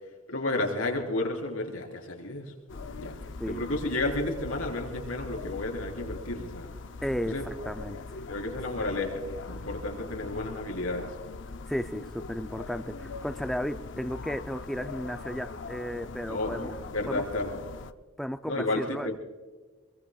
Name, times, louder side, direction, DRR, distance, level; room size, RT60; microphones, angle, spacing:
voice 1, 0.3-2.5 3.0-3.1 3.5-6.7 7.3-7.4 8.3-9.2 9.5-11.1 16.3-17.6 18.5-19.2, left 2 dB, 85° left, 1 dB, 4.3 m, -32 dB
sound 1, 2.7-17.9, left 3 dB, 60° left, 0.6 m, -41 dB
voice 2, 7.0-8.0 11.7-16.7 17.1-17.2 18.2-19.2, equal, ahead, 7 dB, 0.4 m, -34 dB
26.5 x 22.0 x 2.3 m, 1.4 s
head